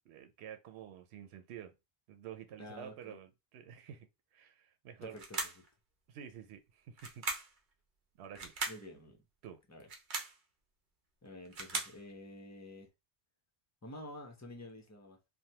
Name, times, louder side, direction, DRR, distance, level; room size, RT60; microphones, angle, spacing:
voice 1, 0.1-1.7 2.1-4.1 4.3-5.2 6.1-7.3 8.2-8.5 9.4-9.6, right 9 dB, 85° right, 0.8 m, -49 dB
voice 2, 2.6-3.2 5.0-5.6 8.7-9.2 9.7-9.9 11.2-12.9 13.8-15.3, left 1 dB, 20° left, 0.6 m, -49 dB
sound 1, 5.2-5.7 7.0-7.6 8.3-8.9 9.8-10.4 11.3-12.0, right 3 dB, 55° right, 0.8 m, -38 dB
3.2 x 2.2 x 2.8 m
omnidirectional pair, 1.1 m